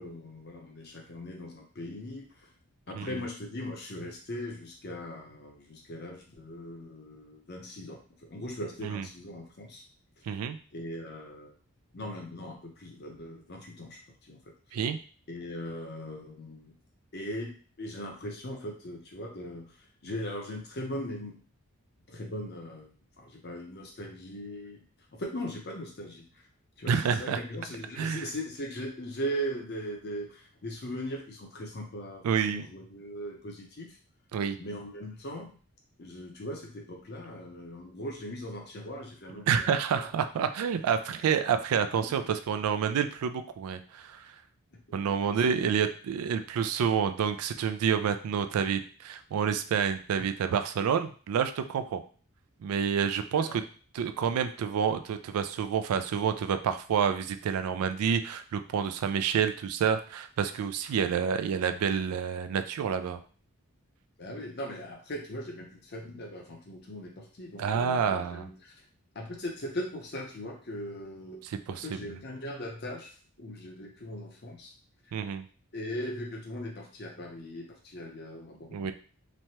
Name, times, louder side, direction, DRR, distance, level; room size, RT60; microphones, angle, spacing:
voice 1, 0.0-2.5 2.9-9.8 10.7-11.5 11.9-14.4 14.7-14.8 15.3-16.8 17.1-19.8 20.0-21.4 22.1-22.9 23.2-24.9 25.1-26.5 26.8-34.0 34.6-35.5 36.0-40.1 45.4-45.5 53.3-53.6 64.2-68.8 69.1-71.4 71.7-74.7 75.1-75.2 75.7-78.9, equal, 45° left, 1 dB, 0.7 m, -39 dB
voice 2, 10.2-10.6 14.7-15.0 26.9-27.4 28.0-28.2 32.2-32.7 34.3-34.6 39.5-44.4 44.9-52.0 52.6-53.6 53.9-63.2 67.6-68.5 71.7-72.1 75.1-75.5 78.7-78.9, right 7 dB, 80° right, 10 dB, 0.3 m, -28 dB
3.1 x 2.2 x 2.8 m, 0.41 s
head